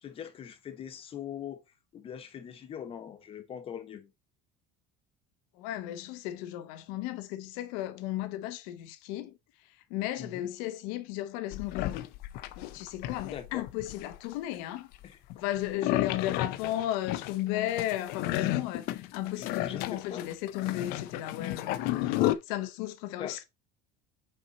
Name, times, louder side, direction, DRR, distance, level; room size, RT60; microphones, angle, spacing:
voice 1, 0.0-1.6 1.9-4.1 10.2-10.5 13.2-13.7 15.0-15.2 15.7-15.8 19.4-20.3 23.2-23.4, left 9 dB, 30° left, 1.2 m, -42 dB
voice 2, 5.5-12.0 12.6-14.9 15.4-23.4, left 14 dB, 80° left, 1.0 m, -35 dB
sound 1, 11.5-14.3 14.9-22.3, left 15 dB, 60° left, 0.5 m, -32 dB
5.7 x 4.4 x 4.1 m
cardioid pair, 150°, 18 cm